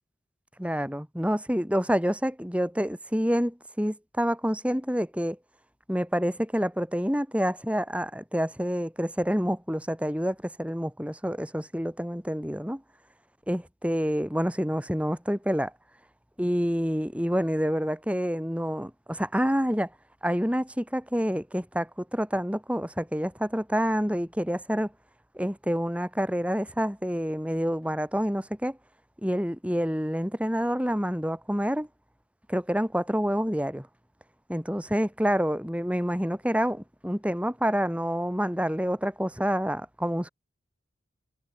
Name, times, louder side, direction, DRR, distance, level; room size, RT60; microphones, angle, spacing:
voice 1, 0.6-5.4 5.9-12.8 13.5-15.7 16.4-19.9 20.2-24.9 25.3-28.8 29.2-31.9 32.5-33.9 34.5-40.3, equal, 5° right, 7.6 m, -28 dB
head